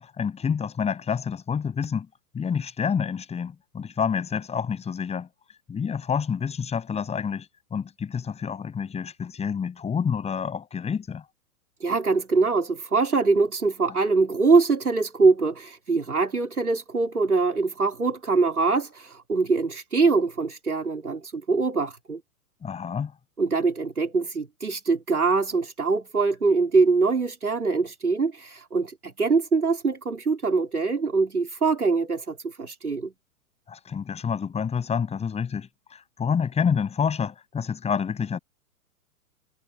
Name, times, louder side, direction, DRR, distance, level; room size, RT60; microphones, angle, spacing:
voice 1, 0.0-2.1 2.3-5.3 5.7-11.2 22.6-23.1 33.7-38.4, left 6 dB, 15° left, 7.4 m, -28 dB
voice 2, 11.8-22.2 23.4-33.1, right 4 dB, 80° right, 3.6 m, -23 dB
figure-of-eight pair, 110°, 44 cm